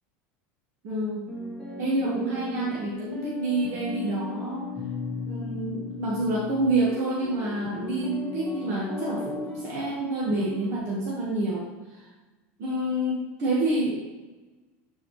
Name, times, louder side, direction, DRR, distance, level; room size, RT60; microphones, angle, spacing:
voice 1, 0.8-1.3 1.8-4.7 5.2-12.1 12.6-14.0, right 2 dB, 45° right, -4 dB, 1.6 m, -28 dB
sound 1, 1.3-10.8, left 3 dB, 10° left, 1.6 m, -36 dB
10.5 x 4.8 x 3.2 m, 1.2 s
supercardioid pair, 150°, 7 cm